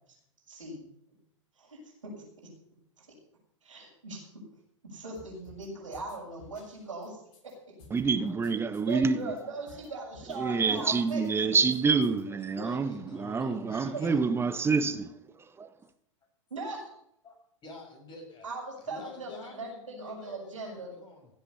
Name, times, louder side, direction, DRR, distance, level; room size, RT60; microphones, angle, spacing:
voice 1, 0.5-0.8 1.6-2.1 3.0-3.1 3.6-4.2 4.8-7.7 8.8-11.2 13.3-13.5 13.9-14.0 16.5-17.0 18.4-20.9, right 3 dB, 80° right, 6.8 m, -40 dB
sound 1, 5.1-5.7 5.9-7.5 7.8-9.4 9.7-9.9 10.1-10.8 11.1-12.2, left 4 dB, 55° left, 7.5 m, -54 dB
voice 2, 7.9-9.3 10.3-15.1 15.6-15.7, right 5 dB, 15° right, 1.1 m, -27 dB
voice 3, 12.3-14.2 17.2-17.3 17.6-18.5 18.8-21.3, left 2 dB, 25° left, 6.4 m, -47 dB
16.5 x 8.2 x 6.9 m
figure-of-eight pair, 100°, 16 cm